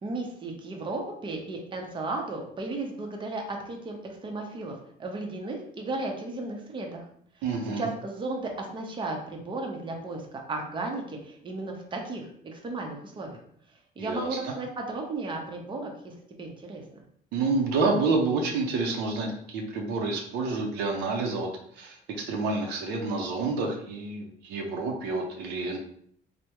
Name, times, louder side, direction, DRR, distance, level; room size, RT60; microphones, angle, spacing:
voice 1, 0.0-4.7 5.0-7.0 7.8-13.4 14.0-17.0, right 2 dB, 30° right, 1 dB, 0.7 m, -35 dB
voice 2, 7.4-7.9 14.0-14.5 17.3-21.5 21.7-25.8, right 3 dB, 90° right, 2 dB, 0.6 m, -28 dB
3.4 x 2.1 x 2.9 m, 0.66 s
cardioid pair, 110°, 17 cm